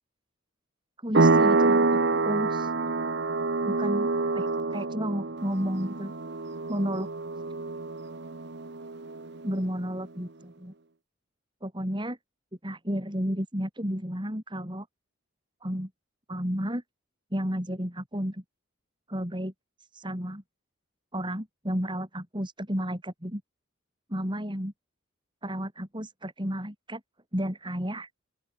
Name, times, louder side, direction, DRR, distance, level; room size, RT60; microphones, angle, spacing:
voice 1, 1.0-2.7 3.6-4.1 4.3-4.5 4.7-6.1 6.7-7.1 9.4-10.7 11.6-12.2 12.6-14.9 15.6-15.9 16.3-16.8 17.3-18.4 19.1-19.5 19.9-20.4 21.1-23.4 24.1-24.7 25.4-27.0 27.3-28.1, equal, 20° right, 6.6 m, -32 dB
sound 1, 1.1-9.5, right 3 dB, 50° right, 1.0 m, -26 dB
open air
head